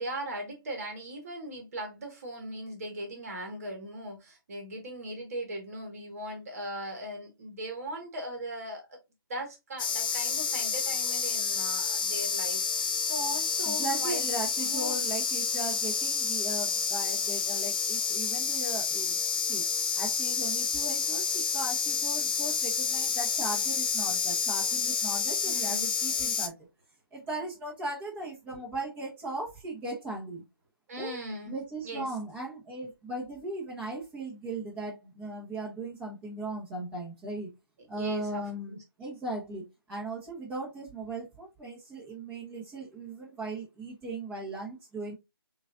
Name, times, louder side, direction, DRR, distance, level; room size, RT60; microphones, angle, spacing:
voice 1, 0.0-9.0 9.3-15.1 25.4-25.9 30.9-31.5 31.8-32.1 37.9-38.8, right 1 dB, 40° right, 1.7 m, -39 dB
sound 1, 9.8-26.5, left 6 dB, 25° left, 0.5 m, -29 dB
voice 2, 13.6-19.6 20.0-26.5 27.1-30.4 31.0-31.2 31.5-37.5 37.9-45.1, right 2 dB, 10° right, 1.3 m, -38 dB
6.2 x 2.7 x 2.5 m
figure-of-eight pair, 160°, 12 cm